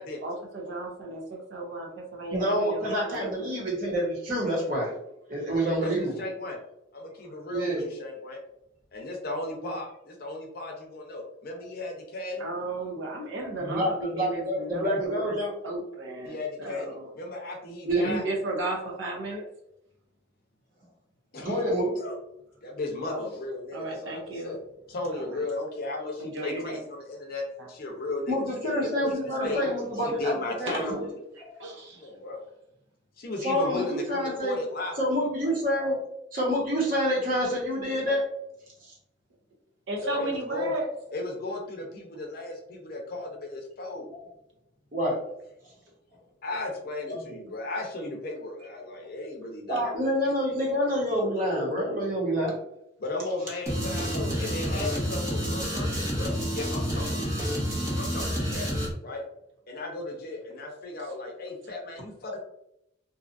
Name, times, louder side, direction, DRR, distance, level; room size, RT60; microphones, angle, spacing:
voice 1, 0.2-3.5 12.4-15.4 15.6-17.1 17.9-19.5 23.1-23.3 23.7-24.6 25.1-25.4 26.2-26.8 27.6-27.7 29.4-29.8 30.7-30.8 31.6-32.0 39.9-40.9 54.7-54.8, right 2 dB, 75° right, -1 dB, 0.7 m, -34 dB
voice 2, 2.3-4.9 5.3-6.2 7.5-7.9 13.6-15.5 17.8-18.1 21.4-21.9 28.3-31.0 31.4-31.5 33.4-34.6 35.0-36.0 36.3-38.2 38.8-38.9 44.9-45.2 47.1-47.4 49.7-52.5, equal, 45° right, -3 dB, 1.0 m, -27 dB
voice 3, 5.6-5.9 6.2-6.6 6.9-8.4 8.9-12.4 16.2-18.2 21.3-21.6 22.0-22.1 22.6-24.6 24.9-28.4 28.6-29.2 29.4-29.6 30.2-31.1 31.9-32.4 33.2-34.9 40.0-40.7 41.1-44.1 46.4-49.8 53.0-57.4 58.0-58.7 59.0-59.2 59.7-62.4, left 2 dB, 50° left, 1 dB, 0.6 m, -35 dB
sound 1, 53.7-58.9, equal, 15° right, 0.6 m, -29 dB
2.7 x 2.3 x 2.5 m, 0.80 s
head